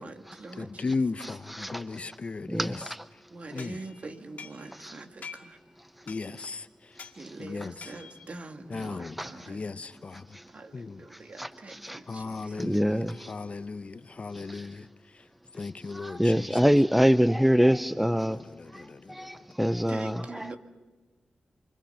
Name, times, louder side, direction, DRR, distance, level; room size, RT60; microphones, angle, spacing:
voice 1, 0.0-0.8 3.3-6.1 6.9-9.6 10.2-13.0 19.9-20.6, right 3 dB, 55° right, 2.2 m, -44 dB
voice 2, 0.6-2.8 3.5-3.8 6.1-7.0 7.4-7.9 8.7-9.2 9.5-10.4 10.7-11.0 12.1-15.3 15.5-16.6 17.6-19.3, left 4 dB, 50° left, 0.8 m, -36 dB
voice 3, 1.5-1.8 2.5-3.0 4.8-4.9 9.2-9.3 10.3-10.4 11.4-12.0 12.6-13.3 14.3-14.7 15.9-18.4 18.7-18.8 19.1-20.2, equal, 5° right, 0.6 m, -25 dB
sound 1, 3.6-4.9 5.2-5.6 6.1-6.5 7.0-7.2 7.8-8.3, left 6 dB, 75° left, 2.0 m, -46 dB
29.0 x 23.5 x 5.7 m
cardioid pair, 50°, 3 cm